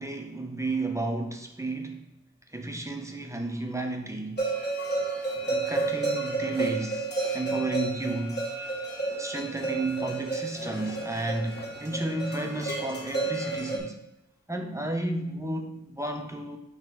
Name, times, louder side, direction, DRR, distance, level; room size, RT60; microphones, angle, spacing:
voice 1, 0.0-2.1 2.5-4.4 5.5-8.5 9.2-14.0 14.5-16.6, right 2 dB, 10° right, 4 dB, 0.8 m, -32 dB
sound 1, 4.4-13.8, right 3 dB, 35° left, 1.6 m, -31 dB
8.5 x 3.3 x 3.5 m, 0.87 s
wide cardioid pair, 55°, 32 cm